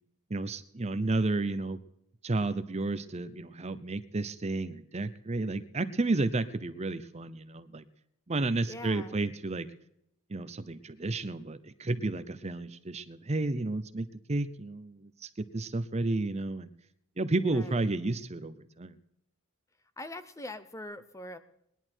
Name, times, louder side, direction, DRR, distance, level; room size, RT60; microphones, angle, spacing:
voice 1, 0.3-1.8 2.2-7.8 8.3-9.7 10.3-16.7 17.2-19.0, right 2 dB, 30° right, 12 dB, 0.7 m, -32 dB
voice 2, 8.7-9.2 17.5-17.9 20.0-21.4, left 1 dB, 15° left, 11 dB, 0.8 m, -43 dB
20.0 x 11.0 x 4.5 m, 0.77 s
head